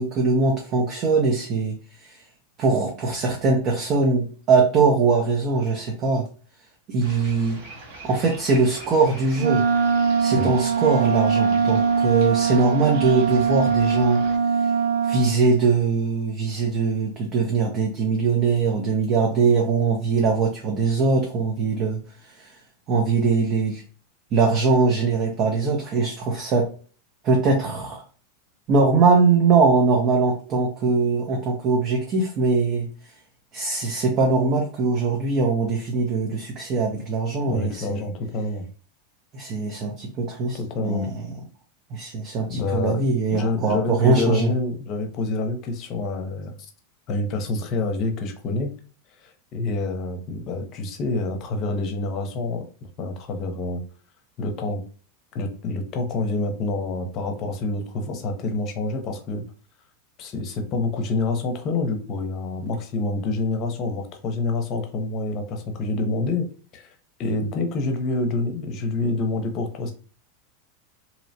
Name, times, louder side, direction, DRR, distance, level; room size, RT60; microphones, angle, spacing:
voice 1, 0.0-2.2 2.6-6.3 6.9-7.6 8.0-9.6 10.2-14.2 14.6-14.7 15.0-22.0 22.4-22.5 22.9-23.8 24.3-26.7 27.2-28.0 28.7-32.9 33.5-38.0 39.3-41.3 41.9-44.5, right 4 dB, 40° right, 0 dB, 0.6 m, -21 dB
sound 1, 7.0-14.4, right 2 dB, 60° right, 1.0 m, -42 dB
Wind instrument woodwind instrument, 9.4-15.4, right 6 dB, 90° right, 0.4 m, -22 dB
voice 2, 37.5-38.6 40.5-41.1 42.5-43.0 43.3-46.5 47.1-48.7 49.2-52.6 53.0-53.8 54.4-54.8 55.3-59.4 60.2-66.5 66.7-66.9 67.2-69.9, left 3 dB, 45° left, 5 dB, 0.7 m, -27 dB
2.8 x 2.0 x 2.7 m, 0.40 s
hypercardioid pair, 120°, 0 cm